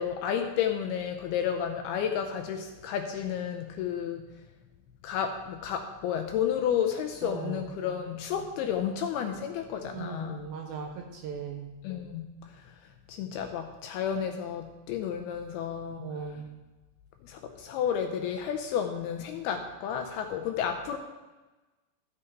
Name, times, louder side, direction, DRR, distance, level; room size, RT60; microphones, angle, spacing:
voice 1, 0.0-4.3 5.0-10.4 11.8-12.8 13.1-16.0 17.2-21.0, left 8 dB, 80° left, 5 dB, 2.3 m, -31 dB
voice 2, 7.2-7.7 9.9-11.7 15.9-16.4, right 6 dB, 75° right, 4 dB, 2.3 m, -38 dB
13.5 x 6.7 x 4.6 m, 1.2 s
omnidirectional pair, 5.0 m